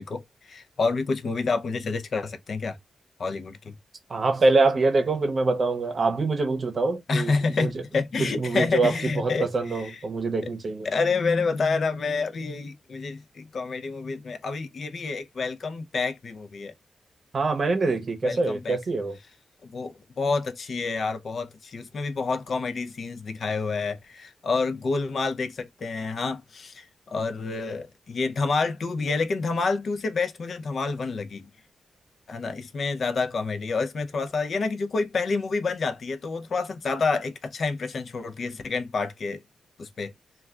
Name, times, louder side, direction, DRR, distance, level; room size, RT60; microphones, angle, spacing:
voice 1, 0.0-2.8 3.2-3.7 7.1-10.0 10.4-10.5 10.8-16.7 18.2-18.8 19.6-31.5 32.3-39.4 39.8-40.1, left 4 dB, 60° left, 0.5 m, -28 dB
voice 2, 4.1-7.7 8.2-10.9 17.3-19.2, right 3 dB, 50° right, 0.7 m, -24 dB
2.3 x 2.2 x 3.4 m
cardioid pair, 75°, 0 cm